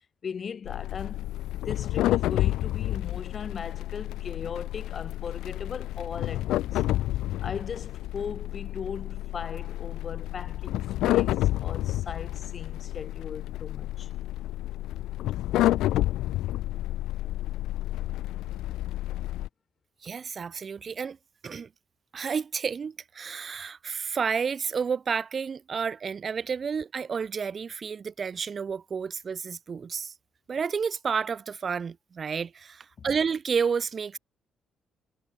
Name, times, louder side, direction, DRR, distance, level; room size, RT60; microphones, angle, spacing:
voice 1, 0.2-6.8 7.4-14.1 33.0-33.2, left 6 dB, 45° left, 2.4 m, -38 dB
sound 1, 0.6-19.5, left 15 dB, 90° left, 0.5 m, -30 dB
voice 2, 20.0-21.2 21.4-21.7 22.1-30.1 30.5-34.2, right 6 dB, 45° right, 0.4 m, -30 dB
cardioid pair, 90°, 0 cm